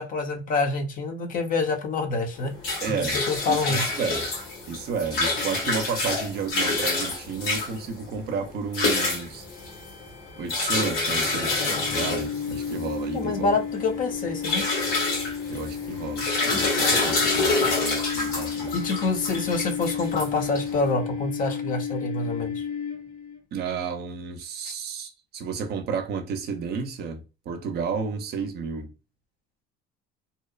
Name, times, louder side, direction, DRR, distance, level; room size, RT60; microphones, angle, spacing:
voice 1, 0.0-2.5 3.0-3.8 13.1-14.7 18.7-22.6, left 3 dB, 40° left, 0.6 m, -27 dB
sound 1, 2.4-20.9, left 3 dB, 90° left, 1.4 m, -27 dB
voice 2, 2.8-3.2 3.5-4.3 4.7-9.5 10.4-13.5 15.5-18.8 23.5-28.9, right 5 dB, 50° right, 0.5 m, -32 dB
sound 2, 9.4-23.4, left 7 dB, 70° left, 1.0 m, -33 dB
2.7 x 2.0 x 2.4 m
cardioid pair, 125°, 21 cm